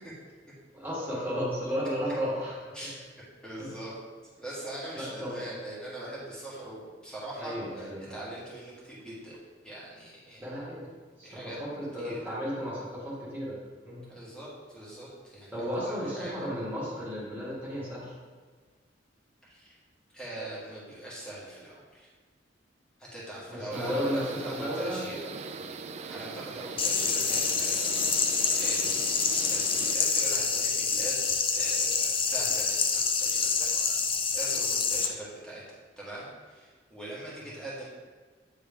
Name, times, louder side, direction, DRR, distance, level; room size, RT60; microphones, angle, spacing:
voice 1, 0.7-2.6 3.6-3.7 4.9-5.5 7.4-8.2 10.4-10.9 11.2-13.6 13.8-14.0 15.5-18.1 23.5-25.0 37.4-37.5, equal, 10° right, -7 dB, 1.6 m, -34 dB
voice 2, 3.4-3.9 4.4-9.4 9.6-10.4 11.2-11.6 12.0-12.2 14.1-16.5 19.4-19.8 20.1-22.1 23.0-24.1 24.4-25.3 26.1-27.9 28.6-29.0 29.5-31.2 31.5-33.7 34.3-37.8, right 1 dB, 5° left, -7 dB, 1.6 m, -42 dB
sound 1, 23.7-30.0, right 4 dB, 35° right, 0.3 m, -41 dB
sound 2, 26.8-35.1, left 5 dB, 30° left, 0.4 m, -27 dB
8.8 x 3.3 x 3.5 m, 1.5 s
head